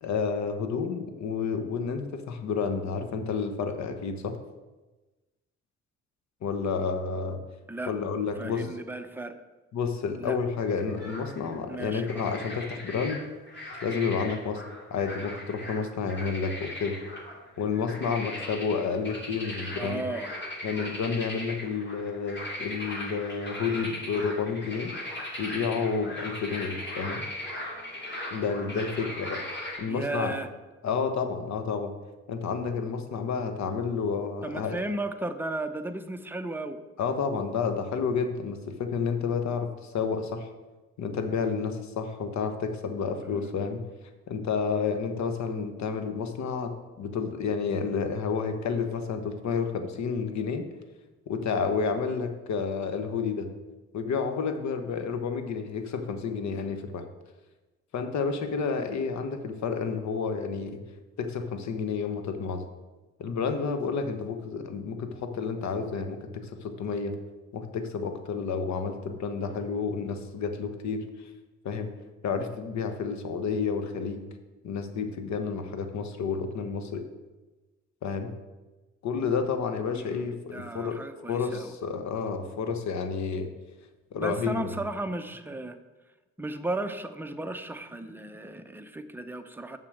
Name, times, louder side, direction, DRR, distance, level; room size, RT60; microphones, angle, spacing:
voice 1, 0.0-4.4 6.4-7.4 7.9-8.7 9.7-13.2 13.8-14.6 14.9-17.0 17.6-20.0 20.6-24.9 25.4-27.2 28.3-29.4 29.8-30.4 30.8-31.9 32.3-34.8 37.0-40.5 41.0-43.8 44.3-50.7 51.3-53.5 53.9-57.1 57.9-60.8 61.2-62.6 63.2-67.1 67.5-71.3 71.6-71.9 72.2-74.3 74.6-77.0 78.0-78.3 79.0-81.0 81.3-83.5 84.1-84.7, left 5 dB, 65° left, 7 dB, 1.2 m, -30 dB
voice 2, 8.4-9.4 10.2-10.4 11.7-12.4 19.8-20.3 29.9-30.5 34.4-36.8 43.2-43.5 79.9-81.7 84.1-85.8 86.4-89.8, right 2 dB, 5° right, 6 dB, 0.8 m, -35 dB
sound 1, 10.6-11.6 12.0-13.2 13.5-29.8, left 1 dB, 35° left, 2.8 m, -39 dB
7.4 x 6.4 x 6.5 m, 1.2 s
cardioid pair, 90°, 30 cm